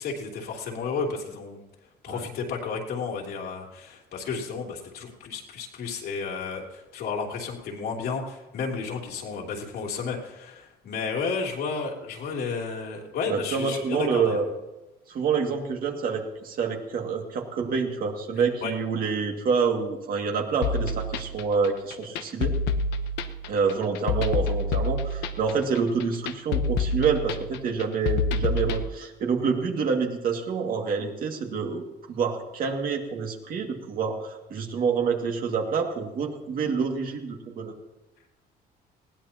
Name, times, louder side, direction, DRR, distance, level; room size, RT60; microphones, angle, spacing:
voice 1, 0.0-1.6 2.0-14.4 18.6-18.7, left 5 dB, 70° left, 0 dB, 3.1 m, -32 dB
voice 2, 13.3-14.5 15.1-22.5 23.5-37.7, right 5 dB, 55° right, 2 dB, 2.3 m, -27 dB
sound 1, 20.6-28.8, left 3 dB, 85° left, 0.9 m, -27 dB
20.0 x 16.0 x 2.9 m, 1.0 s
cardioid pair, 110°, 17 cm